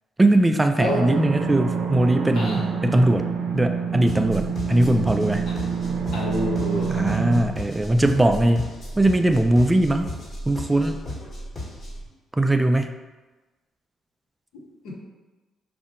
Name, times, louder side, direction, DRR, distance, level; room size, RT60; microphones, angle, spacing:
voice 1, 0.2-3.3 3.5-5.4 6.9-10.1 10.5-11.0 12.3-12.9, right 1 dB, 15° right, 6 dB, 0.3 m, -20 dB
sound 1, 0.8-7.4, right 6 dB, 75° right, 0.5 m, -27 dB
sound 2, 4.1-12.1, equal, 40° left, 1.5 m, -35 dB
voice 2, 6.1-7.2 14.8-14.9, left 1 dB, 85° left, -5 dB, 1.3 m, -28 dB
5.0 x 2.6 x 3.7 m, 1.2 s
cardioid pair, 90°, 0 cm